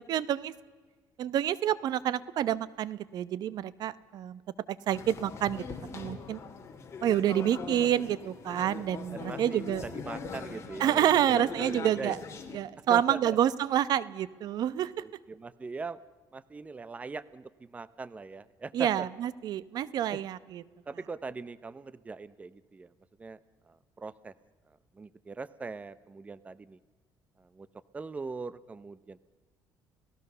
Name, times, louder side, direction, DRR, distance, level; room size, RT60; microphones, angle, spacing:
voice 1, 0.1-0.5 1.2-4.4 4.7-5.7 5.9-6.4 7.0-9.8 10.8-12.2 12.5-14.9 18.7-20.6, right 11 dB, 60° right, 18 dB, 0.9 m, -28 dB
sound 1, 4.9-12.6, left 5 dB, 35° left, 3.0 m, -41 dB
voice 2, 9.1-12.1 12.9-13.4 15.0-16.0 16.3-19.1 20.1-20.2 20.9-22.9 23.2-23.4 23.7-24.3 25.0-26.8 27.6-27.7 27.9-29.2, right 4 dB, 20° right, 17 dB, 0.7 m, -41 dB
30.0 x 17.5 x 6.8 m, 1.4 s
cardioid pair, 130°, 8 cm